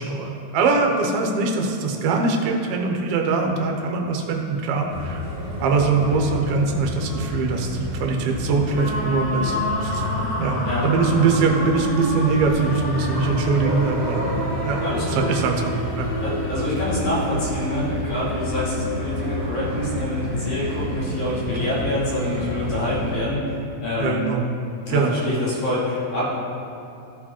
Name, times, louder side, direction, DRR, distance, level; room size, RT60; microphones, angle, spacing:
voice 1, 0.0-5.2 5.6-10.0 10.4-16.1 24.0-24.5 24.9-25.2, right 4 dB, 65° right, 2 dB, 1.5 m, -22 dB
sound 1, 4.9-23.2, equal, 35° right, 2.1 m, -29 dB
sound 2, 8.7-19.9, left 1 dB, 45° left, 3.0 m, -31 dB
voice 2, 14.8-15.2 16.2-24.2 24.9-26.4, left 1 dB, 80° left, -8 dB, 3.9 m, -26 dB
13.5 x 4.9 x 4.3 m, 2.7 s
omnidirectional pair, 3.4 m